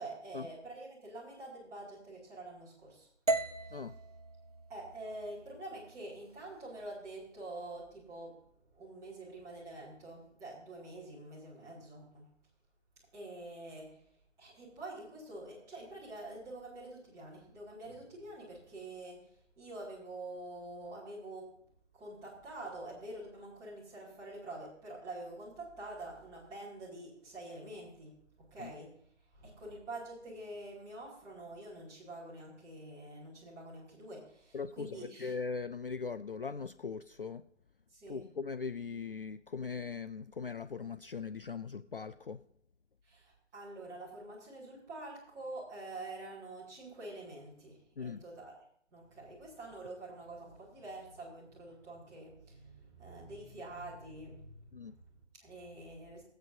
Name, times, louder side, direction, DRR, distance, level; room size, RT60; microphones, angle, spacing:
voice 1, 0.0-3.1 4.7-8.4 8.7-12.3 13.1-14.0 14.4-21.6 21.9-29.0 29.3-35.3 37.9-38.3 43.0-56.2, right 2 dB, 10° right, -7 dB, 2.4 m, -47 dB
sound 1, 3.3-7.4, right 2 dB, 35° right, 0.5 m, -39 dB
voice 2, 34.5-37.4 38.1-42.4 48.0-48.2 54.7-54.9, left 5 dB, 50° left, 11 dB, 0.4 m, -40 dB
24.0 x 8.2 x 2.7 m, 0.65 s
figure-of-eight pair, 150°, 36 cm